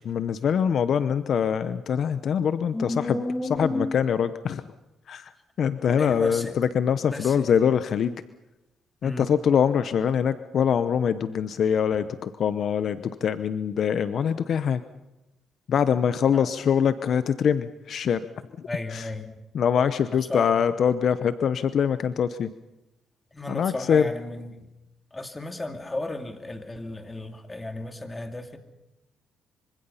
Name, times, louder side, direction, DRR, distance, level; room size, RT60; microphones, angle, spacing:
voice 1, 0.0-3.2 3.6-4.6 5.1-5.3 5.6-8.1 9.0-14.8 15.7-18.2 18.9-19.1 19.5-22.5 23.5-24.1, left 7 dB, 60° left, 13 dB, 0.8 m, -24 dB
voice 2, 2.7-3.9 6.0-6.6 7.1-7.5 9.0-9.3 16.3-16.5 18.6-19.4 20.1-20.5 23.3-24.6 25.1-28.6, left 2 dB, 20° left, 6 dB, 2.6 m, -33 dB
25.0 x 25.0 x 5.7 m, 0.97 s
cardioid pair, 90°, 0 cm